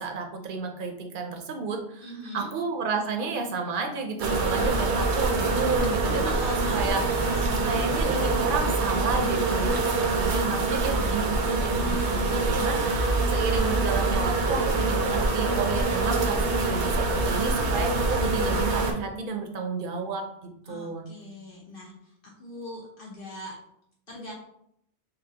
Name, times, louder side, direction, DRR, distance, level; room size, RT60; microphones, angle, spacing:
voice 1, 0.0-2.1 2.3-7.0 7.6-21.1, right 4 dB, 60° right, 3 dB, 0.7 m, -31 dB
voice 2, 2.0-2.5 6.0-7.0 7.3-7.5 7.8-8.1 12.1-13.1 20.6-23.5 24.1-24.3, equal, 55° left, -4 dB, 1.0 m, -42 dB
sound 1, 4.2-18.9, right 3 dB, 85° right, 0.9 m, -25 dB
5.4 x 2.0 x 2.7 m, 0.75 s
omnidirectional pair, 1.1 m